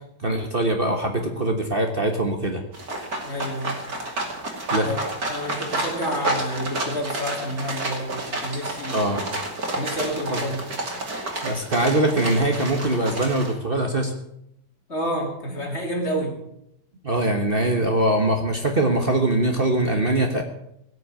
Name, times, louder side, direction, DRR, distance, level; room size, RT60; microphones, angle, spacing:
voice 1, 0.2-2.6 4.7-4.9 8.9-9.2 10.3-10.4 11.4-14.1 17.0-20.4, right 1 dB, 35° right, 4 dB, 1.5 m, -22 dB
sound 1, 2.7-13.5, right 2 dB, 65° right, 3.2 m, -30 dB
voice 2, 3.2-3.8 4.8-9.2 9.7-10.6 14.9-16.4, equal, 40° left, 0 dB, 3.5 m, -29 dB
17.5 x 6.7 x 8.7 m, 0.77 s
omnidirectional pair, 1.7 m